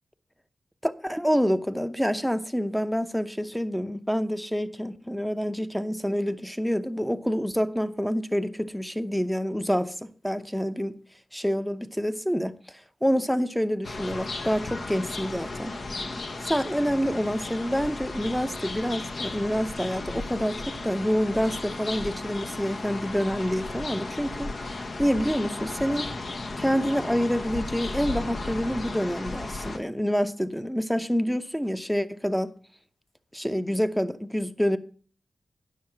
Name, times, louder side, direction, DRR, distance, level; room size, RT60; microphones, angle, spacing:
voice 1, 0.8-11.0 11.3-15.8 16.4-26.1 26.6-32.5 33.3-34.8, equal, 5° left, 0.7 m, -27 dB
sound 1, 13.8-29.8, left 3 dB, 55° left, 1.0 m, -35 dB
9.4 x 6.4 x 5.8 m
cardioid pair, 65°, 0 cm